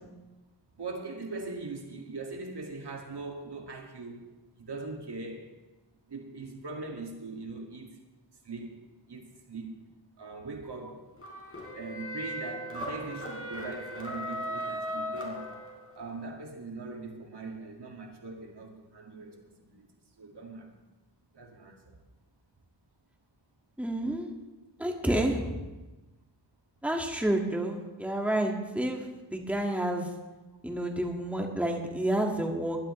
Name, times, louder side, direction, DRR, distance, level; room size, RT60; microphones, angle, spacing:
voice 1, 0.8-5.5 6.1-8.0 8.4-9.8 10.2-11.1 11.7-15.5 16.0-19.9 20.2-20.7 21.3-22.0 25.0-25.3 30.5-30.6, right 3 dB, 65° right, 1 dB, 2.1 m, -41 dB
sound 1, 11.2-16.0, equal, 30° left, 4.0 m, -37 dB
voice 2, 23.8-24.3 24.8-25.5 26.8-30.1 30.6-32.9, right 1 dB, 5° right, 1 dB, 1.9 m, -29 dB
20.5 x 12.0 x 3.2 m, 1.1 s
cardioid pair, 65°, 44 cm